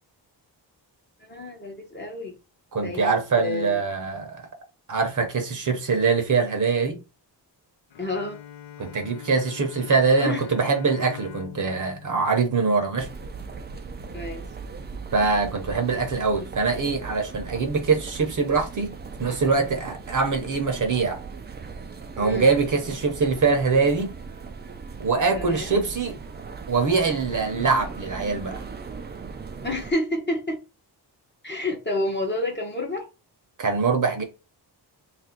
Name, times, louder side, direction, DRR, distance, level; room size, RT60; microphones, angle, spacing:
voice 1, 1.2-2.4 2.8-3.8 8.0-8.4 10.1-10.4 14.1-14.5 22.2-22.5 25.3-25.7 29.6-30.6 31.4-33.1, left 2 dB, 25° left, 0.8 m, -29 dB
voice 2, 2.7-4.5 4.9-7.0 8.8-13.1 15.1-18.9 19.2-21.2 22.2-24.1 25.0-26.2 26.7-28.6 33.6-34.2, right 4 dB, 45° right, 0.8 m, -23 dB
Bowed string instrument, 7.9-13.3, left 10 dB, 90° left, 0.6 m, -43 dB
sound 1, 13.0-29.9, right 4 dB, 25° right, 0.4 m, -38 dB
3.1 x 2.5 x 4.3 m
wide cardioid pair, 135°, 43 cm